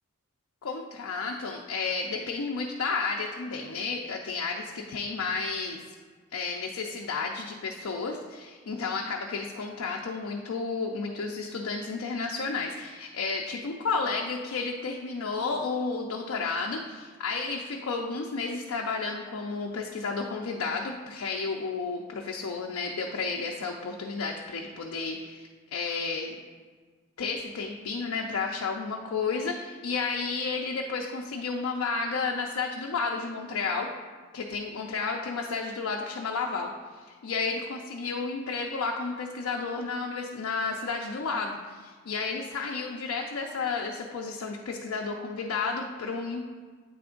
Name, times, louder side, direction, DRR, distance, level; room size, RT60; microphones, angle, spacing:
voice 1, 0.6-5.8 6.3-26.3 27.2-33.9 34.3-46.5, left 4 dB, 70° left, 0 dB, 0.5 m, -32 dB
8.4 x 3.4 x 3.7 m, 1.5 s
head